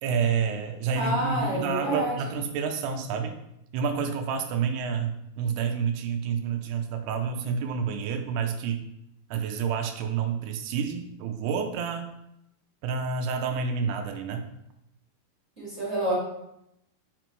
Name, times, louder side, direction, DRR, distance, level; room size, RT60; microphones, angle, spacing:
voice 1, 0.0-3.4 3.7-8.8 9.3-12.2 12.8-14.5, right 6 dB, 90° right, 5 dB, 2.7 m, -29 dB
voice 2, 0.9-2.1 15.6-16.1, right 1 dB, 20° right, -8 dB, 2.3 m, -28 dB
5.1 x 5.1 x 4.5 m, 0.82 s
omnidirectional pair, 4.6 m